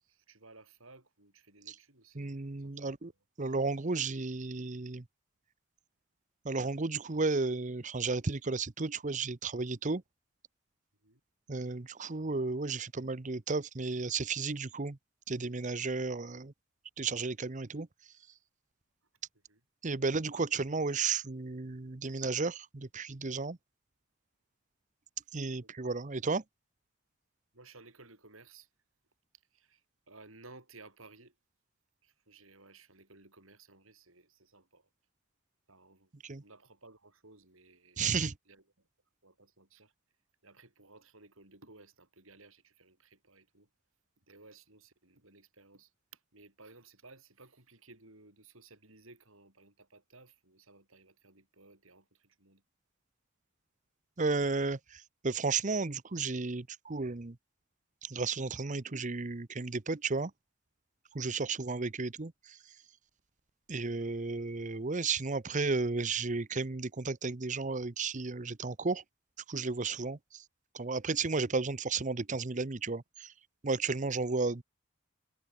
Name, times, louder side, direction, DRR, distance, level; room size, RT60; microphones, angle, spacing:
voice 1, 0.0-3.0 11.0-11.2 19.5-19.6 25.6-25.9 27.5-28.7 29.3-31.4 32.0-34.9 35.7-36.1 36.4-38.1 38.5-38.9 39.2-39.9 40.4-43.7 44.2-52.6 61.3-61.6 73.9-74.2, right 3 dB, 75° right, 7.5 m, -58 dB
voice 2, 2.2-3.1 3.4-5.0 6.4-10.0 11.5-15.0 15.3-16.5 17.0-17.9 19.8-23.6 25.3-26.4 36.2-36.4 38.0-38.3 54.2-57.4 58.0-60.3 61.1-62.6 63.7-69.0 69.5-70.4 70.7-73.3 73.6-74.6, right 4 dB, 35° right, 0.8 m, -33 dB
head